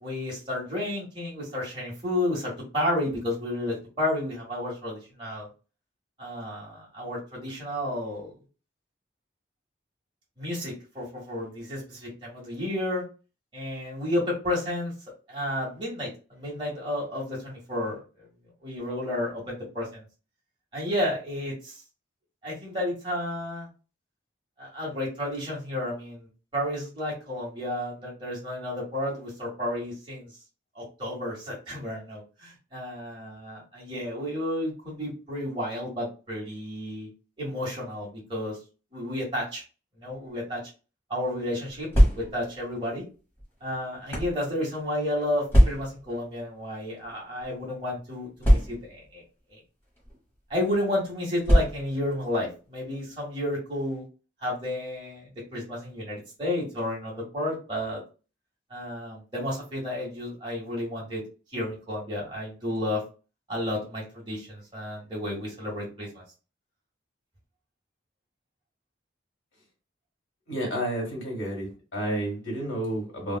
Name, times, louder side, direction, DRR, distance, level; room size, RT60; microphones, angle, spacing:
voice 1, 0.0-5.5 6.2-8.3 10.4-13.0 13.5-14.9 15.3-18.0 18.6-20.0 20.7-21.8 22.4-23.7 24.6-30.3 30.7-37.1 37.4-38.6 38.9-39.6 40.0-40.6 41.1-41.9 42.1-43.0 43.6-49.2 49.5-49.6 50.5-54.0 54.4-58.0 58.7-61.2 61.5-63.0 63.5-66.2, left 1 dB, 25° right, 1.6 m, -31 dB
sound 1, 41.7-42.6 43.4-44.4 45.5-46.1 47.0-47.2 47.4-47.5 48.4-49.1 50.0-50.2 51.4-52.1, equal, 15° left, 1.1 m, -21 dB
voice 2, 70.5-73.4, right 1 dB, 90° left, 1.5 m, -30 dB
3.4 x 2.4 x 2.2 m
head